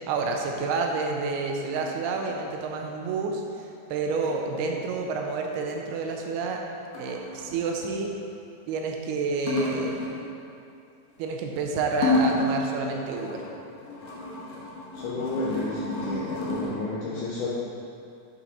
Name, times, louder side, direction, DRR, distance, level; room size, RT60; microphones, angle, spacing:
voice 1, 0.1-6.6 7.0-8.1 8.7-10.0 11.2-13.4, right 4 dB, 90° right, 2 dB, 2.6 m, -29 dB
sound 1, 0.5-0.7 1.8-2.1 4.2-4.4 4.6-4.7 6.9-7.5 9.5-10.3 12.0-12.7 13.0-16.7, left 2 dB, 65° left, 2.4 m, -30 dB
voice 2, 14.9-17.5, left 2 dB, 90° left, -5 dB, 1.8 m, -32 dB
7.8 x 5.8 x 4.1 m, 2.5 s
omnidirectional pair, 4.6 m